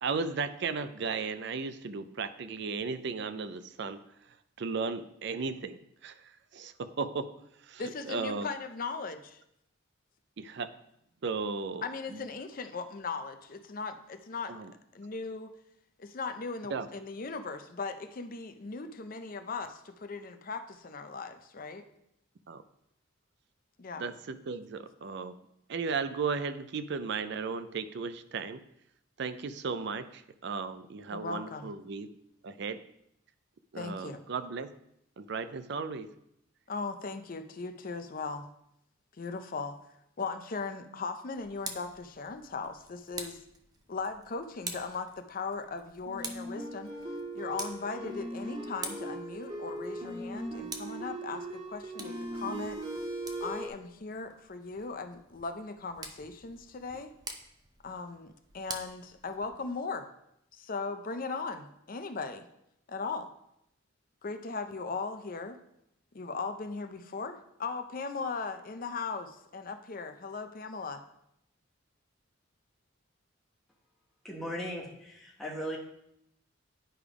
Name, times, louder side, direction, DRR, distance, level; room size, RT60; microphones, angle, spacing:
voice 1, 0.0-4.0 4.6-5.8 6.0-6.1 6.5-7.3 7.7-7.8 8.1-8.5 10.4-10.7 11.2-11.8 14.5-14.7 16.7-16.9 22.5-22.6 24.0-25.3 25.7-28.6 29.2-30.0 30.4-32.1 32.4-32.8 33.7-34.7 35.2-36.1, right 5 dB, 60° right, 12 dB, 0.5 m, -35 dB
voice 2, 7.8-9.4 11.8-14.6 14.9-15.5 16.0-21.9 23.8-24.0 31.1-31.7 33.7-34.2 36.7-38.5 39.2-39.8 40.2-43.4 43.9-46.9 47.3-52.8 53.4-57.1 57.8-60.1 60.5-62.5 62.9-63.3 64.2-65.6 66.1-71.0, left 4 dB, 45° left, 8 dB, 0.6 m, -38 dB
Tick, 41.3-59.8, right 3 dB, 20° right, 0.6 m, -47 dB
sound 1, 46.0-53.7, right 1 dB, 35° right, 1.9 m, -39 dB
voice 3, 74.2-75.8, equal, ahead, -4 dB, 1.3 m, -37 dB
10.0 x 3.4 x 4.9 m, 0.78 s
head